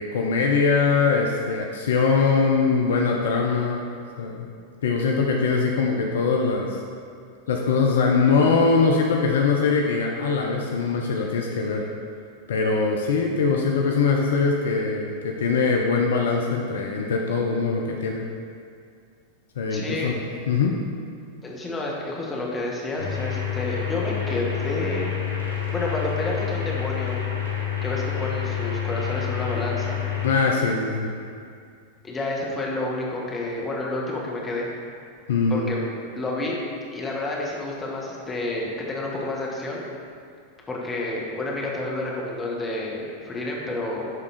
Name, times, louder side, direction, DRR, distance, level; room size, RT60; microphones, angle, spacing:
voice 1, 0.0-4.5 4.8-6.8 7.5-11.9 12.5-18.3 19.6-20.2 20.5-20.8 30.2-31.2 35.3-35.7, left 4 dB, 60° left, 0 dB, 0.6 m, -22 dB
voice 2, 19.7-20.1 21.4-25.1 25.7-27.2 27.8-30.0 32.0-34.7 35.5-36.6 36.9-39.8 40.7-44.1, left 2 dB, 15° left, -3 dB, 1.3 m, -29 dB
sound 1, 23.0-30.3, left 9 dB, 85° right, 1.5 m, -28 dB
10.5 x 3.6 x 4.1 m, 2.3 s
figure-of-eight pair, 90°, 0 cm